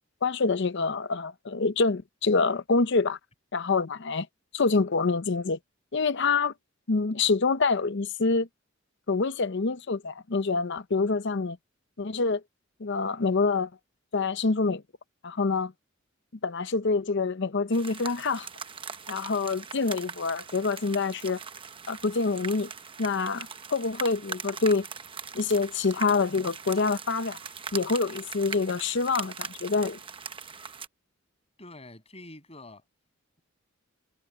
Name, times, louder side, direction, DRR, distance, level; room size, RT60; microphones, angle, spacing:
voice 1, 0.2-3.2 3.5-4.3 4.5-5.6 5.9-6.5 6.9-8.5 9.1-11.6 12.0-12.4 12.8-13.7 14.1-14.8 15.2-15.7 16.4-18.5 19.1-21.4 21.9-22.7 23.0-24.9 25.3-27.4 27.7-30.0, left 4 dB, 60° left, 0.7 m, -26 dB
sound 1, 17.7-30.9, right 6 dB, 25° right, 0.9 m, -41 dB
voice 2, 31.6-32.8, left 2 dB, 30° left, 7.7 m, -46 dB
head